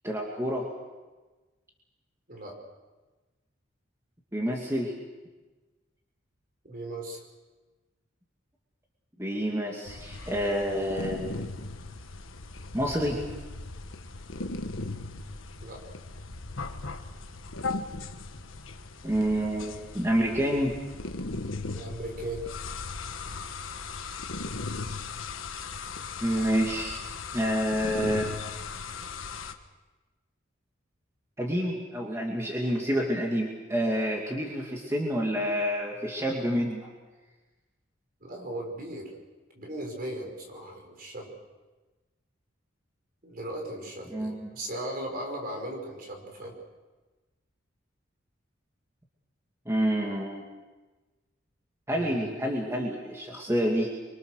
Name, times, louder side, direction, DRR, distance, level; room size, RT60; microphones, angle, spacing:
voice 1, 0.0-0.7 4.3-4.9 9.2-11.3 12.7-13.2 19.0-20.8 26.2-27.0 27.3-28.3 31.4-36.9 44.1-44.5 49.7-50.5 51.9-53.9, equal, 15° right, -1 dB, 2.5 m, -28 dB
voice 2, 6.6-7.2 15.6-15.8 21.7-22.5 38.2-39.1 39.5-41.3 43.2-46.5 51.9-52.3, right 1 dB, 45° right, 2 dB, 5.4 m, -37 dB
sound 1, 9.9-29.5, left 3 dB, 90° left, 1.5 m, -38 dB
25.5 x 25.0 x 6.6 m, 1.2 s
head